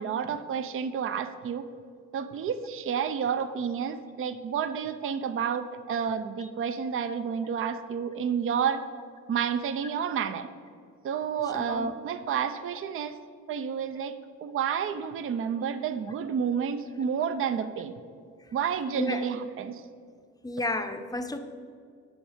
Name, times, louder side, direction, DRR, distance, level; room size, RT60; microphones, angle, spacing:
voice 1, 0.0-1.6 2.1-8.9 9.3-10.5 11.0-13.2 13.5-14.2 14.4-18.0 18.5-19.8, right 7 dB, 45° right, 11 dB, 0.5 m, -30 dB
voice 2, 11.5-11.9 19.0-19.3 20.4-21.4, left 2 dB, 10° left, 7 dB, 0.6 m, -32 dB
10.0 x 5.3 x 5.0 m, 2.1 s
cardioid pair, 90°, 30 cm